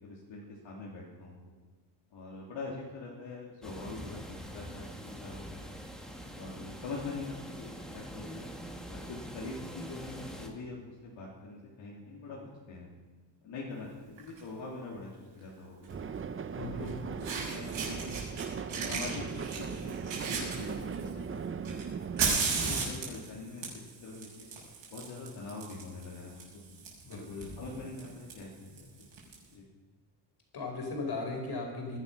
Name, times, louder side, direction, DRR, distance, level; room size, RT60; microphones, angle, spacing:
voice 1, 0.0-1.4 2.1-5.7 6.3-8.5 8.9-12.9 13.4-16.1 16.5-18.3 18.6-21.8 22.3-23.6 24.0-24.5 24.9-26.6 27.1-29.0 29.5-29.6, left 3 dB, 75° left, -5 dB, 3.3 m, -44 dB
sound 1, 3.6-10.5, equal, ahead, 1.9 m, -44 dB
Fire, 14.2-14.4 15.8-15.9 16.9-17.0 17.2-18.4 18.7-21.1 21.6-29.3, right 5 dB, 80° right, 6.3 m, -36 dB
sound 2, 15.9-22.4, right 6 dB, 30° right, 0.6 m, -38 dB
voice 2, 16.6-16.9 27.0-27.4 30.5-32.0, left 3 dB, 55° left, 1 dB, 4.9 m, -37 dB
19.5 x 12.0 x 5.8 m, 1.3 s
cardioid pair, 130°, 46 cm